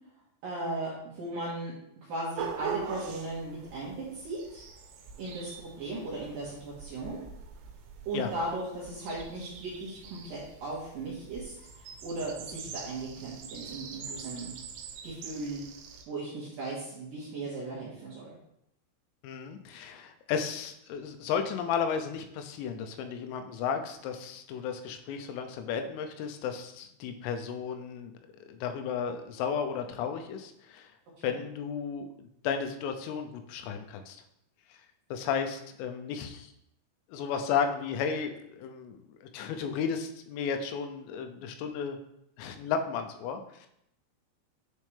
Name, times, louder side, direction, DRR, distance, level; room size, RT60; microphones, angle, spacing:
voice 1, 0.4-1.7 2.0-4.6 5.2-7.2 8.1-14.6 15.0-15.6 16.1-18.4 31.2-31.3, right 2 dB, 70° right, -7 dB, 2.2 m, -37 dB
sound 1, 2.4-16.0, right 6 dB, 90° right, 3.4 m, -43 dB
voice 2, 19.2-28.1 28.5-30.9 31.2-34.2 35.1-36.5 37.1-42.0 42.4-43.7, left 6 dB, 85° left, 6 dB, 3.3 m, -34 dB
9.7 x 4.2 x 3.3 m, 0.77 s
omnidirectional pair, 5.8 m